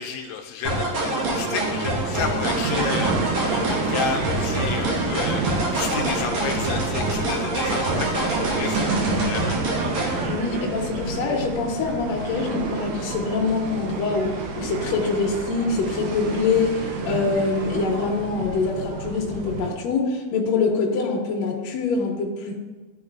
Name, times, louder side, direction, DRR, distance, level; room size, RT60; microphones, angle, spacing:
voice 1, 0.0-9.6, left 6 dB, 85° left, 3 dB, 2.4 m, -31 dB
sound 1, 0.6-10.2, right 1 dB, 60° right, 2.1 m, -25 dB
sound 2, 2.4-19.7, right 4 dB, 80° right, 2.8 m, -30 dB
voice 2, 10.3-14.3 14.6-22.6, left 4 dB, 65° left, -1 dB, 1.9 m, -24 dB
13.5 x 4.9 x 2.4 m, 1.3 s
omnidirectional pair, 4.4 m